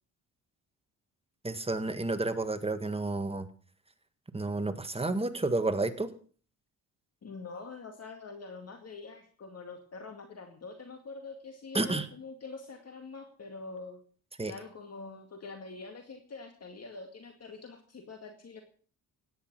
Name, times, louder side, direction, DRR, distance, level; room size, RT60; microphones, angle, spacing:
voice 1, 1.4-3.5 4.3-6.1 11.7-12.0 14.4-14.5, right 2 dB, 15° right, 9 dB, 1.7 m, -30 dB
voice 2, 7.2-14.0 14.5-18.6, left 4 dB, 40° left, 5 dB, 2.2 m, -45 dB
16.5 x 10.0 x 6.2 m, 0.43 s
cardioid pair, 95°, 37 cm